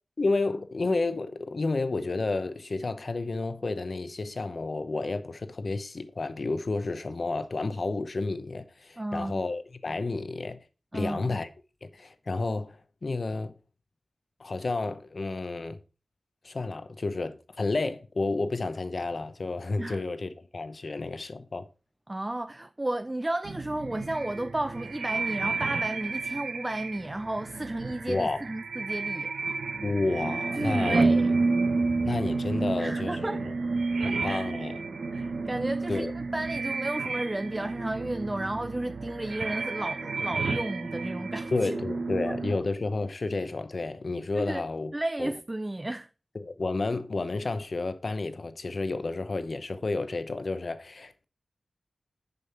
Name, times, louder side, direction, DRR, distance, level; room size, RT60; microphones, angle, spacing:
voice 1, 0.2-10.6 10.9-11.5 11.8-13.5 14.4-15.8 16.4-21.7 28.1-28.4 29.8-31.1 32.0-33.5 34.0-34.8 35.9-36.1 41.5-44.9 45.2-45.3 46.3-51.2, left 3 dB, 55° left, 0.8 m, -31 dB
voice 2, 9.0-9.4 10.9-11.4 19.8-20.0 22.1-29.6 30.6-31.3 32.8-33.4 34.0-34.5 35.1-41.7 42.3-42.4 44.3-44.7 44.9-46.1, right 1 dB, 20° right, 0.3 m, -33 dB
sound 1, 23.4-42.6, right 3 dB, 85° right, 1.0 m, -30 dB
6.8 x 5.5 x 4.3 m
wide cardioid pair, 70°, 0 cm